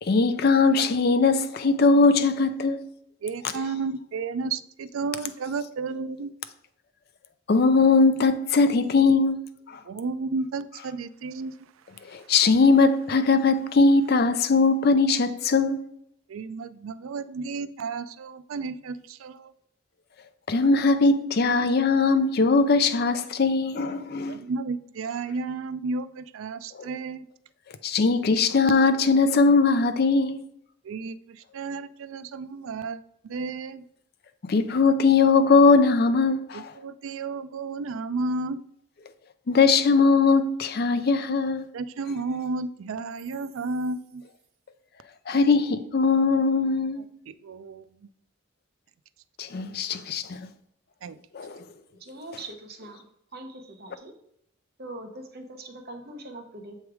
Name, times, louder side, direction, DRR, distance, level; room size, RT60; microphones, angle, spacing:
voice 1, 0.0-2.8 7.5-9.4 9.7-9.8 12.1-15.8 20.5-24.4 26.8-26.9 27.8-30.4 34.5-36.7 39.5-41.7 45.3-47.0 49.4-50.5 51.3-51.6, left 4 dB, 50° left, 0.4 m, -20 dB
voice 2, 3.2-6.3 9.9-11.6 16.3-19.5 24.3-27.3 30.8-33.8 36.5-38.6 41.7-44.2 47.3-47.8 51.0-51.2, right 4 dB, 75° right, 0.4 m, -32 dB
voice 3, 52.0-53.0 53.3-54.1 54.8-56.8, right 2 dB, 50° right, 0.9 m, -41 dB
7.0 x 3.3 x 4.7 m
head